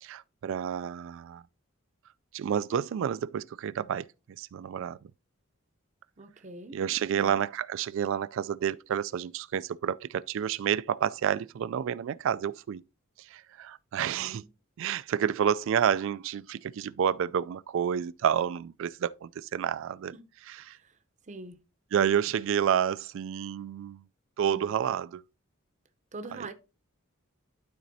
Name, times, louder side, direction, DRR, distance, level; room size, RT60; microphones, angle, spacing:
voice 1, 0.0-1.4 2.3-5.1 6.7-12.8 13.2-14.4 14.8-20.1 20.5-20.8 21.9-24.1 24.4-25.2 26.3-26.5, right 8 dB, 65° right, 0.3 m, -29 dB
voice 2, 6.2-6.8 7.1-7.4 14.0-14.5 20.1-20.2 20.7-21.0 21.3-21.6 24.4-24.7 26.1-26.5, right 2 dB, 35° right, 0.7 m, -44 dB
12.0 x 4.2 x 2.7 m
head